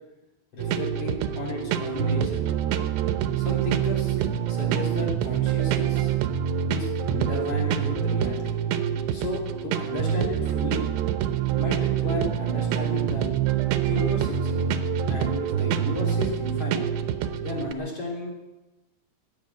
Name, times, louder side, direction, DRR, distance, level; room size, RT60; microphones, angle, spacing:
voice 1, 0.5-2.4 3.4-4.2 4.5-6.1 6.7-8.6 9.1-10.9 11.6-13.3 13.8-14.6 15.1-16.9 17.4-18.3, left 2 dB, 35° left, -1 dB, 3.9 m, -33 dB
sound 1, 0.6-17.7, right 9 dB, 85° right, 3.1 m, -26 dB
16.0 x 10.0 x 8.1 m, 1.0 s
omnidirectional pair, 4.9 m